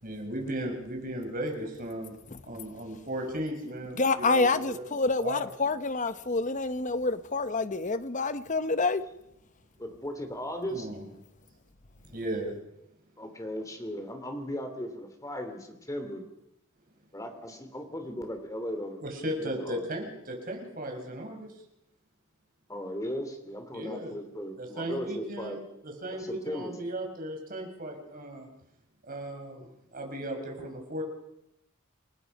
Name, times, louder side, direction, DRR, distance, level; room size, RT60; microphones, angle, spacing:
voice 1, 0.0-2.1 2.4-4.8 5.2-5.4 10.7-11.0 12.1-12.5 19.0-21.5 23.7-24.1 24.6-25.6 25.8-28.5 29.1-31.0, right 1 dB, 40° right, 5.5 m, -36 dB
voice 2, 4.0-9.0, left 3 dB, 35° left, 0.9 m, -27 dB
voice 3, 9.8-10.9 13.2-16.3 17.1-19.8 22.7-25.6 26.1-26.7, equal, 15° left, 3.0 m, -37 dB
29.0 x 19.5 x 5.4 m
head